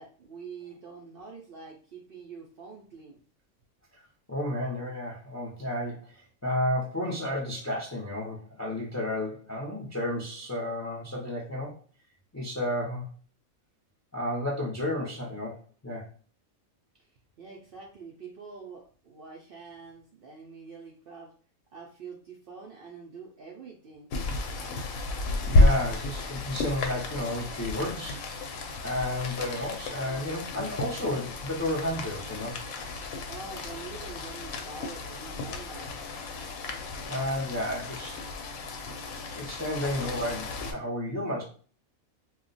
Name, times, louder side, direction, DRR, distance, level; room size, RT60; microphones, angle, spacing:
voice 1, 0.0-3.2 17.0-17.1 17.4-21.3 21.7-24.1 33.3-36.0, right 4 dB, 65° right, -1 dB, 0.6 m, -45 dB
voice 2, 4.3-11.7 12.3-13.1 14.1-15.6 15.8-16.1 25.5-28.2 28.8-32.6 37.1-38.2 39.3-41.4, left 1 dB, 25° left, -3 dB, 0.3 m, -32 dB
Rain, 24.1-40.7, left 2 dB, 85° left, 1.0 m, -31 dB
2.3 x 2.1 x 3.8 m, 0.42 s
omnidirectional pair, 1.4 m